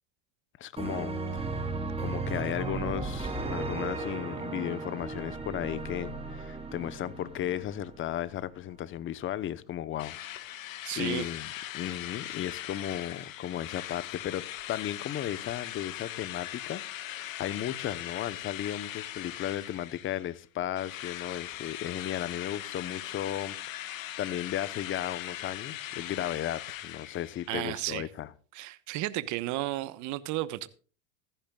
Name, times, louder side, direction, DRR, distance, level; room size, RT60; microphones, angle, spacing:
voice 1, 0.6-1.5 2.0-28.3, left 11 dB, 30° left, 1.0 m, -35 dB
sound 1, 0.8-8.4, right 3 dB, 15° right, 3.7 m, -35 dB
Drill, 10.0-20.4 20.8-27.7, left 13 dB, 85° left, 1.6 m, -40 dB
voice 2, 10.8-11.3 27.5-28.0 28.5-30.7, right 16 dB, 50° right, 1.2 m, -33 dB
16.5 x 14.5 x 2.4 m
supercardioid pair, 115°, 39 cm